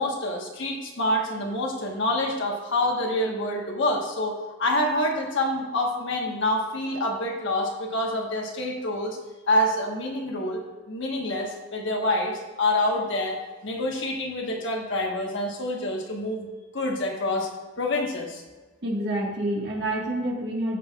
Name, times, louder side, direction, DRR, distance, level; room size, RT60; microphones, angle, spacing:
voice 1, 0.0-9.2 9.5-16.5 16.7-17.5 17.8-18.4, left 1 dB, 60° left, 0 dB, 1.3 m, -27 dB
voice 2, 18.8-20.8, right 1 dB, 55° right, -1 dB, 1.7 m, -28 dB
15.0 x 5.5 x 2.4 m, 1.3 s
head